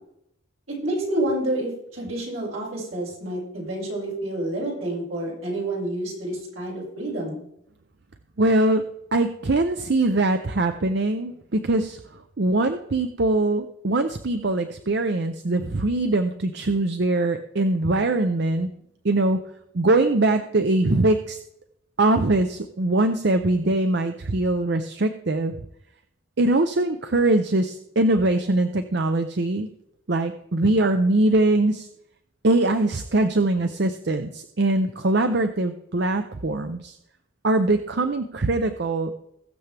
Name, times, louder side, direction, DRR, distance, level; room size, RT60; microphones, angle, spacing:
voice 1, 0.8-7.4, right 1 dB, 75° right, -4 dB, 5.4 m, -28 dB
voice 2, 8.4-8.8 9.1-12.0 12.4-18.7 19.0-19.4 19.7-21.4 22.0-25.5 26.4-29.7 30.1-31.9 32.4-36.9 37.4-39.1, right 2 dB, 55° right, 8 dB, 0.6 m, -22 dB
21.0 x 7.0 x 3.4 m, 0.77 s
head